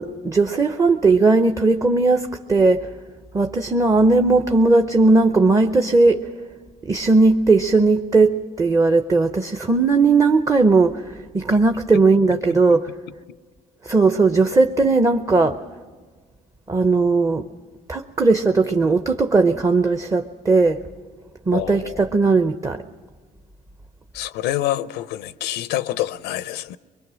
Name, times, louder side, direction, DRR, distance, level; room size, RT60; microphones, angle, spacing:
voice 1, 0.0-2.9 3.3-6.2 6.8-12.9 13.8-15.6 16.7-17.5 17.9-20.8 21.5-22.8, right 3 dB, 20° right, 0.7 m, -17 dB
voice 2, 21.5-22.0 24.1-26.8, left 13 dB, 85° left, 0.6 m, -26 dB
23.0 x 22.0 x 6.2 m
cardioid pair, 110°, 17 cm